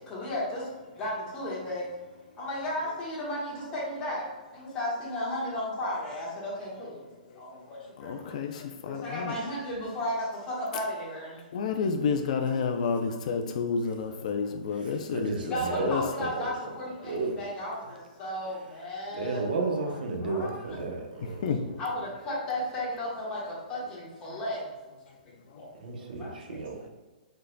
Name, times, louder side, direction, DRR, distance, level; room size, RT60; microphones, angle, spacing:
voice 1, 0.1-0.6 1.0-1.8 2.4-4.2 4.7-6.9 8.0-8.1 9.0-10.1 10.5-11.3 15.5-17.8 18.2-20.0 20.2-20.5 21.8-23.4 23.7-24.6 26.2-26.3, left 1 dB, 20° left, -5 dB, 1.4 m, -33 dB
voice 2, 8.0-9.4 11.5-15.5 15.8-16.0 21.4-21.6, left 5 dB, 50° left, 5 dB, 0.4 m, -30 dB
voice 3, 15.1-15.9 16.4-16.5 17.0-17.4 19.1-21.4 25.8-26.9, right 4 dB, 80° right, 2 dB, 0.8 m, -32 dB
5.3 x 3.9 x 2.2 m, 1.3 s
hypercardioid pair, 160°, 5 cm